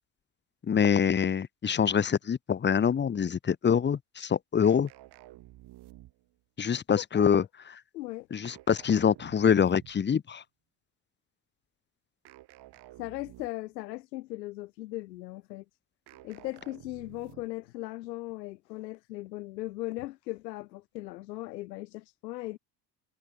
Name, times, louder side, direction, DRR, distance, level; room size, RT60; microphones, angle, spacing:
voice 1, 0.7-4.9 6.6-7.4 8.3-10.4, left 7 dB, 20° left, 1.1 m, -25 dB
sound 1, 4.6-6.4 8.4-10.1 12.2-13.8 16.1-17.7, right 16 dB, 50° right, 3.2 m, -52 dB
voice 2, 7.1-7.5 7.9-8.3 13.0-15.6 16.2-22.6, left 18 dB, 85° left, 0.8 m, -38 dB
hypercardioid pair, 85°, 49 cm